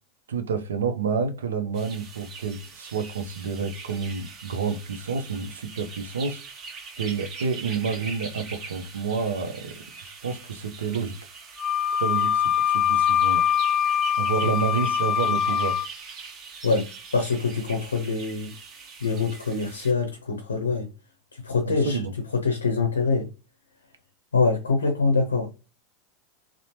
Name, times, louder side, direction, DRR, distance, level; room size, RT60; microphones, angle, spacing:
voice 1, 0.3-6.4 7.0-9.8 10.0-11.1 11.9-13.4 14.2-15.8 21.7-22.1, right 5 dB, 80° right, 0.5 m, -29 dB
sound 1, 1.7-19.9, right 5 dB, 40° right, 0.9 m, -42 dB
Wind instrument woodwind instrument, 11.6-15.9, left 9 dB, 30° left, 0.7 m, -23 dB
voice 2, 17.1-18.5 19.0-20.9 21.4-22.0 22.3-23.3 24.3-25.5, left 4 dB, 90° left, 0.5 m, -24 dB
2.9 x 2.0 x 3.0 m
hypercardioid pair, 90°, 0 cm